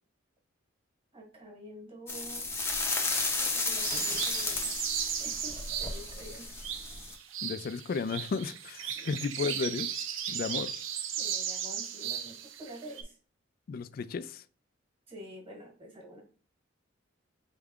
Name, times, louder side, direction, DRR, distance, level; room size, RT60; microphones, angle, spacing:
voice 1, 1.1-2.5 3.4-4.7 5.0-6.5 8.9-9.2 10.2-10.7 11.2-13.2 15.1-16.2, equal, 30° right, 1.5 m, -48 dB
sound 1, 2.1-7.1, left 3 dB, 15° left, 0.6 m, -33 dB
sound 2, 3.8-13.0, right 9 dB, 85° right, 0.6 m, -36 dB
voice 2, 7.4-9.9 10.3-10.7 13.7-14.4, left 5 dB, 50° left, 0.3 m, -33 dB
4.4 x 3.5 x 2.4 m
head